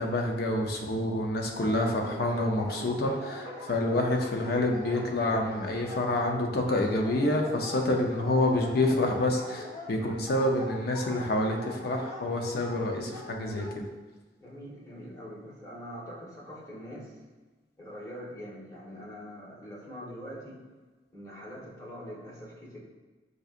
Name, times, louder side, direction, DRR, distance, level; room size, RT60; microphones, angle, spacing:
voice 1, 0.0-13.8, left 1 dB, 60° left, 2 dB, 0.6 m, -28 dB
Dog, 1.5-13.7, left 1 dB, 85° left, 1.2 m, -42 dB
voice 2, 14.4-17.1 17.8-20.6 21.1-22.8, equal, 20° left, -6 dB, 1.1 m, -43 dB
6.0 x 2.7 x 2.4 m, 1.3 s
head